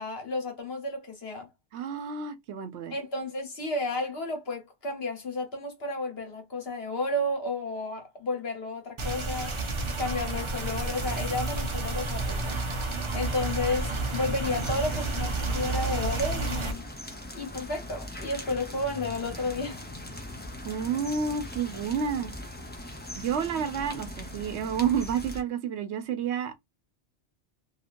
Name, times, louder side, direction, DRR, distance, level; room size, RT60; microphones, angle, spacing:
voice 1, 0.0-1.5 2.9-16.9 17.3-19.8, left 2 dB, 60° left, 1.5 m, -32 dB
voice 2, 1.7-2.9 20.6-22.3 23.1-26.5, right 7 dB, 70° right, 0.8 m, -30 dB
sound 1, 9.0-16.7, right 3 dB, 40° right, 0.4 m, -30 dB
sound 2, 14.4-25.4, left 1 dB, 10° left, 0.6 m, -40 dB
2.8 x 2.8 x 2.4 m
omnidirectional pair, 1.2 m